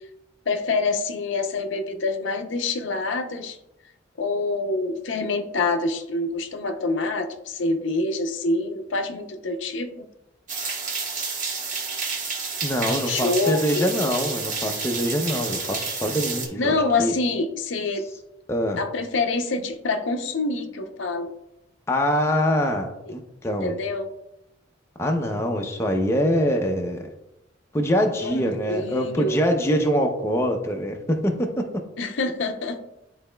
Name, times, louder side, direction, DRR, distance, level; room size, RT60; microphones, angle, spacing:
voice 1, 0.5-3.6 4.2-10.1 13.1-13.9 16.6-18.0 18.8-21.3 23.1-23.2 23.4-24.1 28.2-29.4 32.0-32.8, left 3 dB, 70° left, 6 dB, 0.6 m, -26 dB
sound 1, 10.5-16.5, right 4 dB, 40° right, 1.1 m, -30 dB
voice 2, 12.6-17.1 18.5-18.8 21.9-23.8 25.0-27.0 27.7-31.7, equal, 15° left, 2 dB, 0.5 m, -24 dB
10.5 x 4.0 x 2.2 m, 0.88 s
head